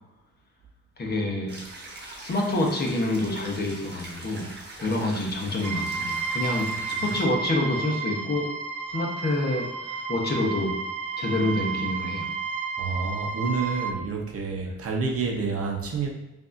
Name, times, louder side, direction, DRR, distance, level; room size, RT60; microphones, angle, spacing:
voice 1, 1.0-1.6 2.2-4.5 4.8-8.5 8.9-10.7 11.2-12.3, left 1 dB, 35° left, 1 dB, 0.9 m, -27 dB
sound 1, 1.5-7.2, right 2 dB, 35° right, 1.2 m, -42 dB
sound 2, 5.6-13.9, right 5 dB, 80° right, 0.5 m, -32 dB
voice 2, 12.8-16.1, right 4 dB, 50° right, 1 dB, 0.8 m, -28 dB
5.2 x 2.7 x 2.5 m, 0.95 s
cardioid pair, 90°, 30 cm